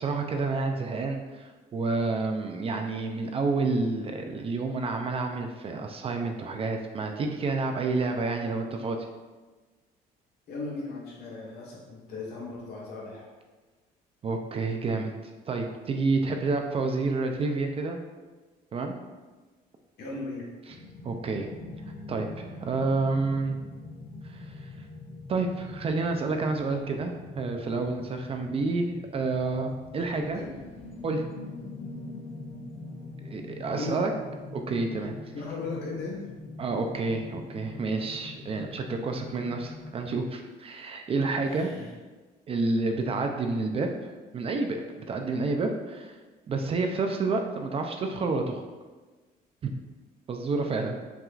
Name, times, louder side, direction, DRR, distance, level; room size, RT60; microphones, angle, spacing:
voice 1, 0.0-9.1 14.2-18.0 18.7-18.9 21.0-21.5 22.1-23.6 24.3-24.5 25.3-30.4 31.0-31.2 33.2-34.1 34.5-35.1 36.6-41.7 42.5-44.1 44.3-44.8 45.1-46.1 46.5-48.6 49.6-49.7 50.3-51.0, right 3 dB, 35° right, 4 dB, 0.4 m, -29 dB
voice 2, 10.5-13.3 20.0-20.5 30.3-30.5 33.7-34.0 35.3-36.3 41.4-41.9, left 3 dB, 75° left, -4 dB, 1.2 m, -37 dB
sound 1, 20.7-39.9, left 2 dB, 40° left, 0.5 m, -43 dB
5.8 x 2.4 x 2.4 m, 1.3 s
cardioid pair, 110°, 17 cm